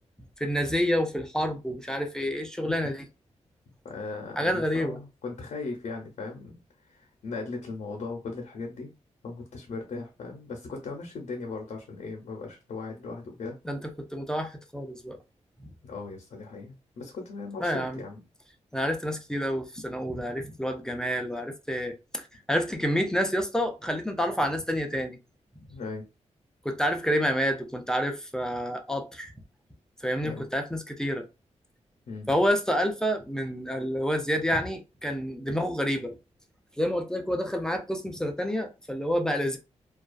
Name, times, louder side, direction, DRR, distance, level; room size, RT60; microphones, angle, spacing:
voice 1, 0.4-3.1 4.4-5.0 13.7-15.2 15.6-15.7 17.6-18.0 18.7-25.2 26.6-29.3 30.0-31.3 32.3-36.2 36.8-39.6, equal, 5° left, 0.4 m, -28 dB
voice 2, 2.6-2.9 3.8-6.5 6.8-8.9 9.2-13.6 15.8-18.2 25.7-26.0 30.2-30.4 32.1-32.3, left 3 dB, 80° left, 0.6 m, -38 dB
2.3 x 2.3 x 2.3 m
wide cardioid pair, 140°, 12 cm